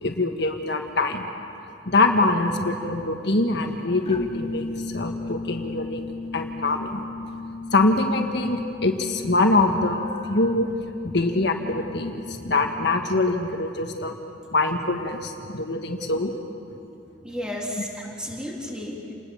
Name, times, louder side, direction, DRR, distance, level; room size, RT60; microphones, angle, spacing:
voice 1, 0.0-1.3 1.9-4.7 4.9-6.0 6.3-7.0 7.7-10.7 11.0-14.2 14.5-16.3, left 2 dB, 65° left, 4 dB, 1.6 m, -24 dB
sound 1, 4.1-13.3, left 2 dB, 35° left, 1.1 m, -36 dB
voice 2, 17.2-19.1, left 1 dB, 5° right, -2 dB, 3.4 m, -33 dB
28.5 x 20.0 x 7.2 m, 2.7 s
head